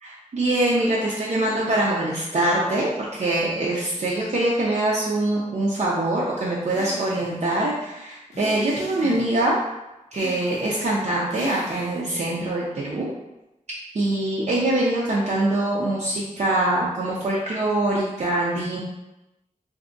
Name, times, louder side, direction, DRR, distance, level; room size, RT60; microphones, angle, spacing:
voice 1, 0.3-9.6 10.1-13.1 13.9-18.8, right 1 dB, 55° right, -6 dB, 0.6 m, -23 dB
sound 1, 6.7-7.4 8.3-9.4 10.1-10.8 11.3-12.1, left 3 dB, 55° left, 0.5 m, -38 dB
2.7 x 2.4 x 3.8 m, 0.95 s
wide cardioid pair, 120°, 14 cm